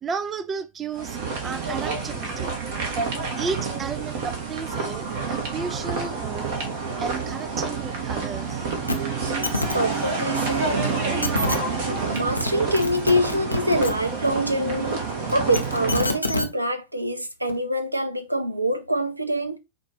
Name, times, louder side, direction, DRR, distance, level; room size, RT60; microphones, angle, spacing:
voice 1, 0.0-2.5 3.4-6.6 7.0-8.7, right 5 dB, 20° right, 0.3 m, -33 dB
sound 1, 1.0-16.2, right 4 dB, 50° right, 1.1 m, -28 dB
sound 2, 8.9-9.0 9.2-9.7 10.8-10.9 11.2-11.6 12.2-12.5 12.8-13.9 15.3-16.5 17.5-17.6, left 2 dB, 85° left, 0.5 m, -26 dB
voice 2, 9.7-10.9 11.8-15.0 15.3-19.6, equal, 85° right, 0.4 m, -25 dB
4.2 x 2.4 x 3.2 m
figure-of-eight pair, 90°, 0 cm